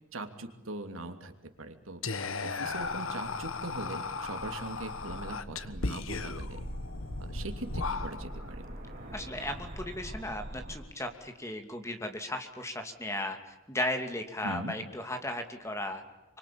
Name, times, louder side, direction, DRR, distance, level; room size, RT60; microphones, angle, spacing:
voice 1, 0.1-1.3 1.6-2.0 2.4-6.6 7.2-8.6 14.4-14.7, right 2 dB, 90° right, 7 dB, 2.9 m, -41 dB
Whispering, 2.0-8.5, left 4 dB, 90° left, 1.4 m, -36 dB
sound 1, 2.5-10.7, equal, 45° right, 5.6 m, -43 dB
voice 2, 9.1-16.0, left 1 dB, 15° left, 6 dB, 2.6 m, -36 dB
27.5 x 25.0 x 8.8 m, 0.97 s
head